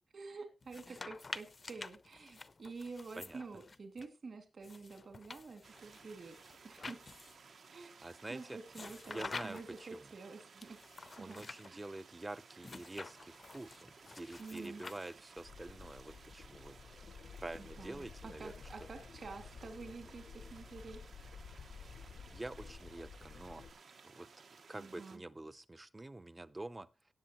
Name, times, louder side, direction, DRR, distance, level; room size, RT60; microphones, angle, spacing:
voice 1, 0.1-6.4 6.6-7.0 7.7-7.9 8.3-10.8 11.2-11.8 14.4-14.8 17.6-21.0 24.7-25.2, right 4 dB, 55° right, 7 dB, 2.3 m, -49 dB
sound 1, 0.6-4.1 4.6-7.5 8.7-9.8 10.6-11.7 12.6-15.4, left 3 dB, 35° left, 0.5 m, -49 dB
sound 2, 5.6-25.2, right 5 dB, 80° right, 1.4 m, -59 dB
voice 2, 8.0-8.6 9.1-10.0 11.2-17.1 17.4-18.5 21.8-22.0 22.3-23.6 24.0-24.3 24.7-26.9, right 2 dB, 15° right, 16 dB, 0.5 m, -47 dB
sound 3, 15.4-23.7, left 5 dB, 80° left, 0.8 m, -53 dB
18.0 x 7.7 x 3.0 m, 0.26 s
wide cardioid pair, 180°, 0 cm